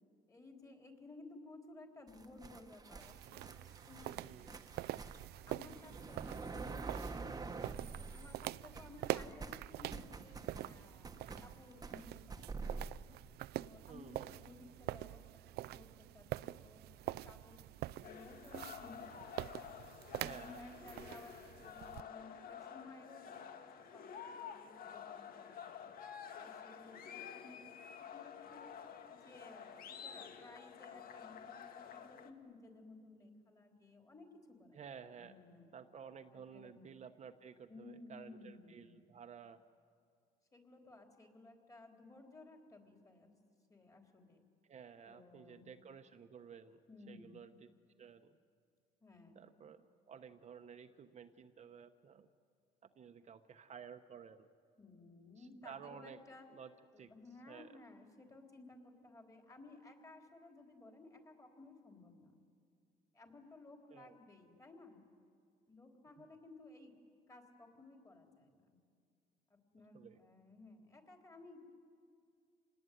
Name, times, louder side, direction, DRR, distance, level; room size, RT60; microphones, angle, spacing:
voice 1, 0.3-4.8 5.5-7.2 7.8-12.8 13.5-15.2 15.7-17.6 17.9-19.4 20.2-23.6 23.9-24.0 24.4-25.8 26.3-28.7 29.1-34.8 35.2-35.7 36.3-36.8 37.7-39.1 40.5-43.3 43.7-44.4 45.1-45.7 46.9-47.4 49.0-49.5 54.8-56.5 56.9-62.4 63.1-65.0 65.7-67.0 67.3-68.8 69.5-71.7, left 2 dB, 20° left, 3 dB, 4.0 m, -57 dB
sound 1, 2.1-8.5 8.7-12.9, right 4 dB, 20° right, 1.2 m, -47 dB
sound 2, 3.0-22.0, right 15 dB, 75° right, 0.5 m, -46 dB
voice 2, 13.9-14.4 20.1-20.9 34.7-35.4 35.7-39.6 44.6-46.8 47.1-47.7 48.0-48.4 49.3-52.3 53.0-54.5 55.4-56.2 56.5-56.7 57.0-57.1 57.5-57.8 63.9-64.2 69.9-70.2, right 7 dB, 40° right, 7 dB, 1.1 m, -54 dB
sound 3, 18.0-32.3, left 7 dB, 60° left, 1.8 m, -50 dB
27.5 x 19.5 x 9.5 m, 2.3 s
cardioid pair, 110°, 17 cm